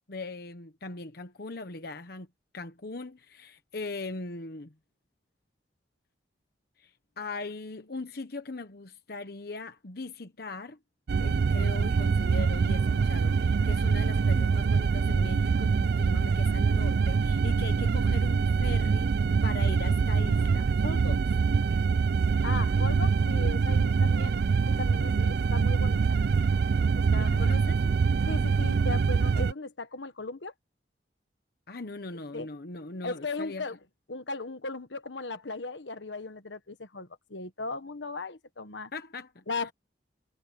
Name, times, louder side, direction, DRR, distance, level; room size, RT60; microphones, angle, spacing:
voice 1, 0.0-2.3 2.5-4.7 6.8-10.8 11.2-21.4 27.2-27.8 31.7-33.6 38.9-39.7, left 3 dB, 55° left, 1.1 m, -40 dB
sound 1, 11.1-29.5, right 5 dB, 60° right, 0.4 m, -24 dB
voice 2, 22.4-24.4 24.7-26.2 26.9-27.4 27.8-27.9 28.3-30.5 32.3-32.5 33.0-33.8 34.1-38.9 39.5-39.7, left 3 dB, 75° left, 1.4 m, -37 dB
head